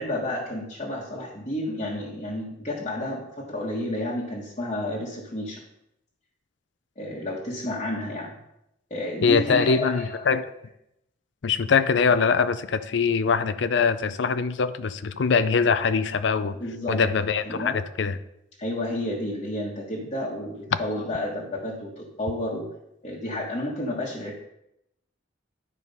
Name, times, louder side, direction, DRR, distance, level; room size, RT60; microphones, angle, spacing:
voice 1, 0.0-5.6 7.0-8.3 8.9-10.2 16.6-17.0 17.4-17.8 18.6-22.7 23.0-24.4, left 1 dB, 35° left, -5 dB, 1.3 m, -31 dB
voice 2, 9.2-10.4 11.4-16.6 16.9-18.2 20.7-20.8, left 5 dB, 65° left, 13 dB, 0.5 m, -23 dB
10.5 x 4.8 x 5.4 m, 0.82 s
head